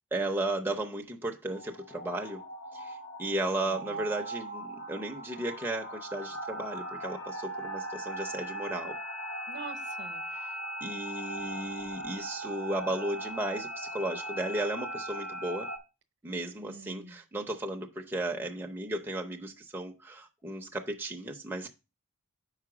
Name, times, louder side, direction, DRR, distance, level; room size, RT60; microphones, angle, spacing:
voice 1, 0.1-2.4 2.7-9.0 10.3-10.4 10.8-15.7 16.2-21.7, right 1 dB, 10° right, 0.6 m, -35 dB
sound 1, 1.5-15.8, right 1 dB, 75° left, 1.4 m, -39 dB
voice 2, 3.5-4.0 9.5-10.2 16.6-17.2, right 3 dB, 55° right, 0.9 m, -46 dB
5.2 x 4.8 x 6.0 m
head